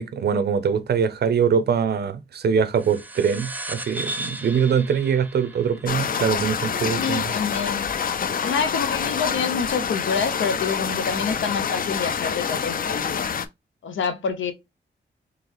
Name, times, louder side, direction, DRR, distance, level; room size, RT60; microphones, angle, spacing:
voice 1, 0.0-7.3, right 7 dB, 60° right, 0.5 m, -23 dB
sound 1, 2.7-7.7, right 1 dB, 10° right, 0.5 m, -36 dB
sound 2, 5.9-13.5, left 7 dB, 50° left, 0.4 m, -26 dB
voice 2, 6.9-7.9 8.4-13.2 13.8-14.5, left 5 dB, 90° left, 0.8 m, -27 dB
3.9 x 3.3 x 2.9 m
wide cardioid pair, 135°, 19 cm